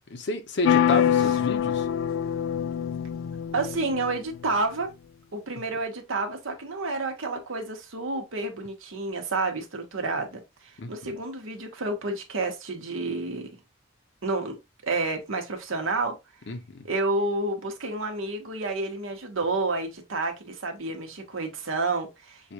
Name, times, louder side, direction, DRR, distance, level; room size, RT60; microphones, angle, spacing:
voice 1, 0.1-1.9 10.8-11.2 16.5-16.9 22.4-22.5, left 2 dB, 60° left, 0.7 m, -31 dB
sound 1, 0.6-4.4, left 9 dB, 80° left, 0.3 m, -25 dB
voice 2, 3.5-4.9 5.3-13.5 14.2-14.6 14.8-16.2 16.8-22.5, right 3 dB, 80° right, 1.2 m, -30 dB
6.4 x 2.4 x 2.8 m
head